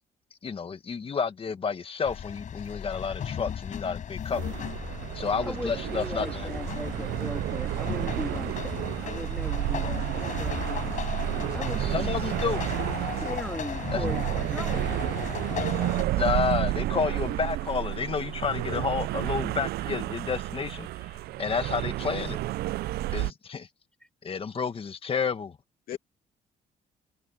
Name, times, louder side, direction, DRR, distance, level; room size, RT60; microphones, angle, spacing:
voice 1, 0.4-4.6 5.2-6.5 11.8-12.6 13.9-14.0 16.2-20.9 21.4-22.4 23.1-23.6 24.2-25.6, left 5 dB, 35° left, 1.7 m, -30 dB
sound 1, 2.0-16.0, left 8 dB, 50° left, 4.9 m, -36 dB
sound 2, 4.3-23.3, right 16 dB, 80° right, 0.4 m, -31 dB
voice 2, 5.4-10.8 11.5-12.2 13.1-15.1 21.2-21.3 24.0-24.1, left 1 dB, 5° left, 2.3 m, -38 dB
voice 3, 15.5-16.4 18.5-18.9 25.9-26.0, left 11 dB, 70° left, 2.5 m, -41 dB
cardioid pair, 115°, 16 cm